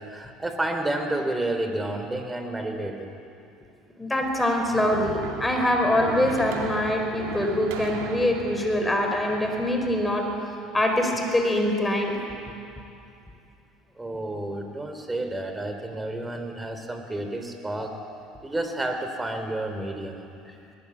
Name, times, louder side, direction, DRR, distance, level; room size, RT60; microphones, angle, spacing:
voice 1, 0.0-3.1 14.0-18.0 18.4-20.3, right 1 dB, 15° right, 6 dB, 3.5 m, -30 dB
voice 2, 4.0-10.3 10.7-12.2, left 1 dB, 10° left, 3 dB, 4.7 m, -24 dB
sound 1, 4.2-10.4, right 6 dB, 75° right, 2.6 m, -38 dB
21.0 x 20.5 x 8.5 m, 2.6 s
hypercardioid pair, 75°, 0 cm